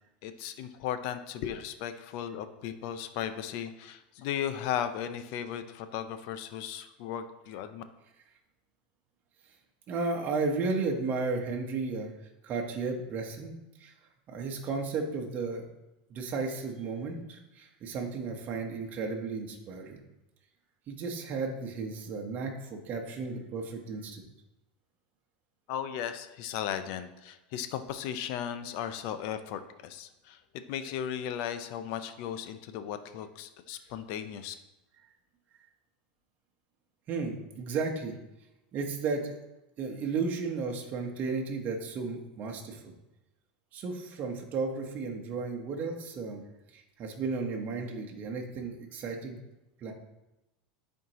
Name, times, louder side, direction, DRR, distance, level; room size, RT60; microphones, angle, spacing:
voice 1, 0.2-7.8 25.7-34.5, left 9 dB, 60° left, 10 dB, 0.6 m, -36 dB
voice 2, 9.9-12.1 12.4-13.5 13.8-13.9 14.3-15.6 16.1-20.0 20.9-24.3 37.1-38.2 38.7-39.4 39.8-42.9 43.7-46.4 46.7-49.4 49.8-49.9, right 4 dB, 40° right, 2 dB, 1.2 m, -34 dB
10.5 x 4.5 x 3.0 m, 0.96 s
supercardioid pair, 125°, 5 cm